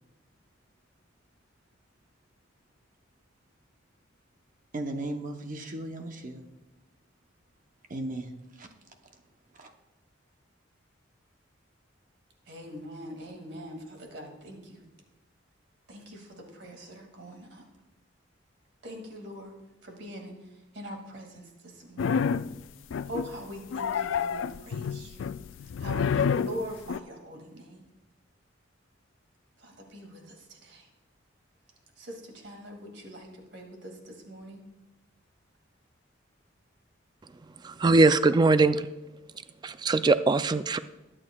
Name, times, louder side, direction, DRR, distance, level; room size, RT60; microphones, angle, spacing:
voice 1, 4.7-6.5 7.9-8.7 9.5-9.7, right 1 dB, 45° right, 5 dB, 0.9 m, -36 dB
voice 2, 12.5-14.8 15.9-17.6 18.8-19.5 19.8-20.3 20.7-22.0 23.1-25.3 25.8-27.8 29.6-30.9 32.0-34.6, equal, 60° right, 2 dB, 2.3 m, -42 dB
sound 1, 22.0-22.5 22.9-23.4 23.7-27.0, left 6 dB, 75° left, 0.3 m, -29 dB
voice 3, 37.6-38.9 39.6-40.8, right 3 dB, 20° right, 13 dB, 0.3 m, -21 dB
21.5 x 8.8 x 2.3 m, 1.1 s
head